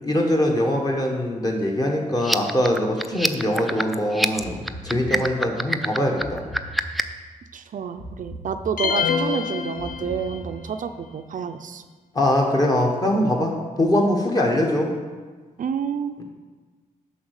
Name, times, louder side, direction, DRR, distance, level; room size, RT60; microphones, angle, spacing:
voice 1, 0.0-6.4 12.1-14.9, left 1 dB, 25° left, 0 dB, 1.3 m, -22 dB
sound 1, 2.2-7.2, equal, ahead, 0.3 m, -26 dB
sound 2, 4.4-5.5 6.2-7.3 8.0-9.1 9.8-10.9, right 1 dB, 40° left, 1.2 m, -40 dB
voice 2, 7.5-11.8 14.5-14.7 15.6-16.2, right 7 dB, 65° right, 8 dB, 0.4 m, -29 dB
sound 3, 8.8-10.6, left 6 dB, 75° left, 0.5 m, -26 dB
7.2 x 5.5 x 6.5 m, 1.4 s
wide cardioid pair, 155°, 15 cm